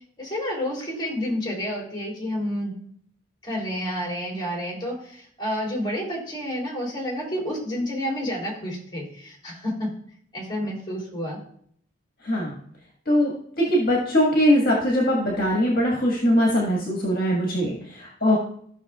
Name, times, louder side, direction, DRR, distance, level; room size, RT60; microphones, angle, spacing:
voice 1, 0.2-2.7 3.4-9.9 10.3-11.4 18.3-18.4, equal, 25° left, -2 dB, 3.4 m, -29 dB
voice 2, 12.2-12.6 13.1-18.4, equal, 50° left, -3 dB, 1.8 m, -21 dB
15.0 x 6.3 x 2.4 m, 0.63 s
head